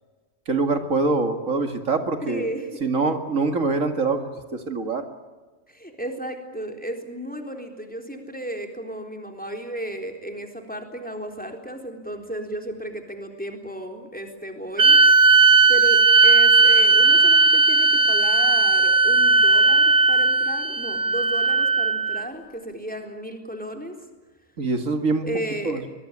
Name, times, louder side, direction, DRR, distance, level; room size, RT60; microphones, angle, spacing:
voice 1, 0.5-2.5 2.8-5.1 24.6-25.3 25.6-25.8, right 3 dB, 75° right, 7 dB, 2.5 m, -24 dB
voice 2, 2.2-2.8 5.7-15.2 15.7-23.9 25.2-25.9, right 1 dB, 5° left, 4 dB, 3.8 m, -34 dB
sound 1, 14.8-22.3, right 4 dB, 50° right, 1.3 m, -17 dB
24.0 x 22.5 x 9.9 m, 1.3 s
omnidirectional pair, 1.4 m